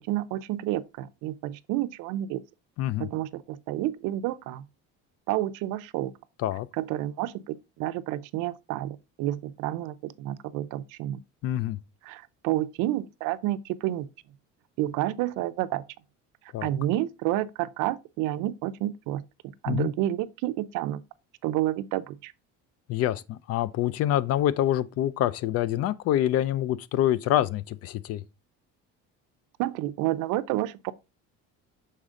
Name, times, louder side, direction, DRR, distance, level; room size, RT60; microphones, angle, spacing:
voice 1, 0.0-2.4 3.0-4.7 5.3-6.1 6.7-11.2 12.0-14.1 14.8-15.8 16.6-21.0 21.4-22.3 29.6-30.9, right 14 dB, 80° right, 0.6 m, -30 dB
voice 2, 11.4-11.8 16.5-16.7 19.7-19.9 22.9-28.2, left 12 dB, 50° left, 0.4 m, -26 dB
6.6 x 4.2 x 3.6 m
cardioid pair, 155°, 31 cm